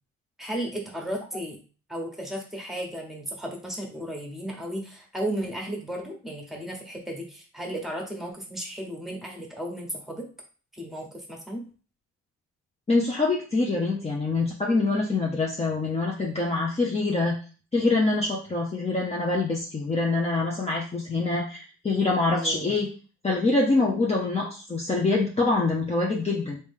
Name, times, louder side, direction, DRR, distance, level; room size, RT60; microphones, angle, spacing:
voice 1, 0.4-1.6 1.9-10.3 10.7-11.6 22.3-22.7, right 1 dB, ahead, 0 dB, 1.2 m, -34 dB
voice 2, 12.9-17.4 17.7-22.9 23.2-26.6, left 3 dB, 20° left, -3 dB, 0.7 m, -25 dB
3.2 x 2.8 x 3.6 m, 0.37 s
cardioid pair, 90°, 30 cm